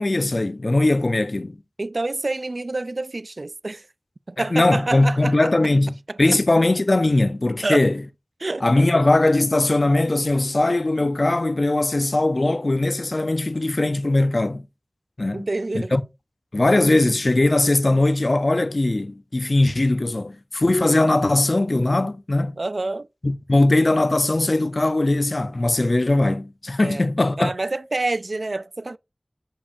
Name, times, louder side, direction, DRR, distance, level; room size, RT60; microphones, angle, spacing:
voice 1, 0.0-1.6 4.4-8.0 8.6-14.6 15.2-15.5 15.9-16.0 16.5-22.6 23.2-27.5, left 2 dB, 60° left, 0.6 m, -20 dB
voice 2, 1.8-3.9 4.3-5.5 6.1-6.2 7.6-7.9 8.4-8.9 15.3-15.9 22.6-23.1 26.8-27.1 27.4-29.0, right 2 dB, 70° right, 0.3 m, -27 dB
7.2 x 7.1 x 2.6 m
wide cardioid pair, 40°, 0 cm